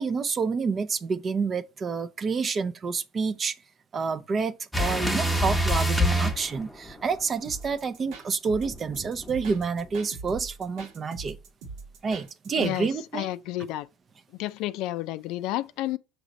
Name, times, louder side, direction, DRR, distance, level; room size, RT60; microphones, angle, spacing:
voice 1, 0.0-3.5 3.9-11.4 12.0-13.3, right 5 dB, 30° right, 0.5 m, -28 dB
sound 1, 4.7-7.2 8.6-9.9, equal, 5° right, 1.0 m, -26 dB
sound 2, 7.4-12.8, right 4 dB, 75° right, 1.3 m, -42 dB
voice 2, 12.6-13.9 14.4-16.0, left 15 dB, 70° left, 0.4 m, -31 dB
6.2 x 3.0 x 5.1 m
supercardioid pair, 115°, 0 cm